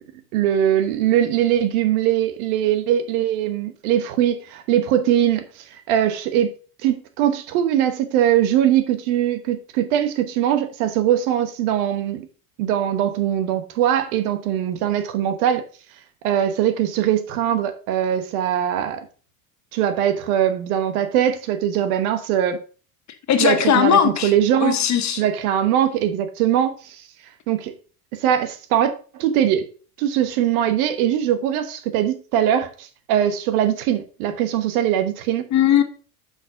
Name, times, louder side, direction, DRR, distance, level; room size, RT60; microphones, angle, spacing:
voice 1, 0.3-6.5 6.8-12.3 12.6-15.6 16.2-19.1 19.7-22.6 23.4-24.8 25.1-27.0 27.5-27.7 28.1-29.7 30.0-35.5, right 10 dB, 70° right, 1.3 m, -21 dB
voice 2, 23.3-24.3 24.6-25.2 35.5-35.8, left 9 dB, 40° left, 1.2 m, -18 dB
5.9 x 5.6 x 4.7 m
hypercardioid pair, 75°, 45 cm